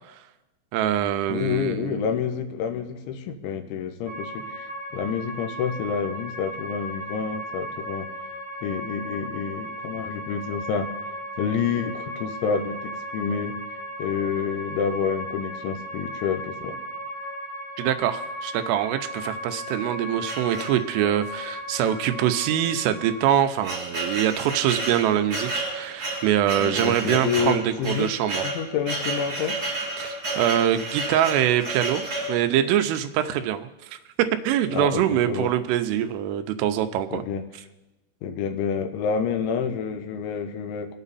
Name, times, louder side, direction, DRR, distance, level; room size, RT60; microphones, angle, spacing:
voice 1, 0.7-2.1 17.8-28.4 30.0-32.0 32.3-37.2, right 11 dB, 85° right, 8 dB, 3.3 m, -24 dB
voice 2, 1.3-8.1 8.6-10.9 11.4-13.5 14.0-16.8 26.6-28.1 28.4-29.6 34.7-35.5 37.1-37.4 38.2-41.0, left 7 dB, 75° left, 6 dB, 3.2 m, -28 dB
sound 1, 4.1-23.4, equal, 5° right, 5.0 m, -36 dB
sound 2, 20.3-21.1 21.8-22.0 22.3-22.4 23.0-32.4, right 2 dB, 20° right, 6.2 m, -31 dB
26.5 x 9.0 x 4.1 m, 1.0 s
omnidirectional pair, 5.7 m